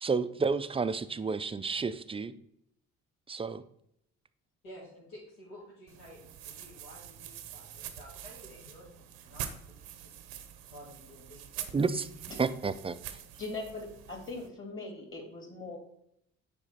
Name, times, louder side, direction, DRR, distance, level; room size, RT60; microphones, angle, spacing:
voice 1, 0.0-2.3 3.3-3.6 11.7-12.1 12.4-13.0, right 4 dB, 15° right, 13 dB, 0.4 m, -30 dB
voice 2, 4.6-10.2 10.6-11.7 12.3-12.4, equal, 75° left, -8 dB, 2.3 m, -52 dB
sound 1, 5.9-14.5, right 10 dB, 75° right, 0.8 m, -45 dB
voice 3, 13.4-15.8, left 3 dB, 30° left, 2 dB, 2.5 m, -40 dB
7.0 x 4.8 x 4.2 m, 0.74 s
hypercardioid pair, 50°, 38 cm